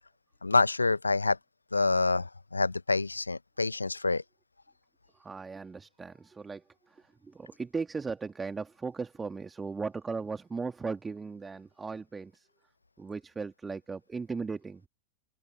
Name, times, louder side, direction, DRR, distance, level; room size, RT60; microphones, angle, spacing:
voice 1, 0.4-1.4 1.7-4.2, left 3 dB, 80° left, 1.2 m, -27 dB
voice 2, 5.2-12.5 13.0-14.9, right 4 dB, 15° right, 2.9 m, -37 dB
figure-of-eight pair, 90°, 0 cm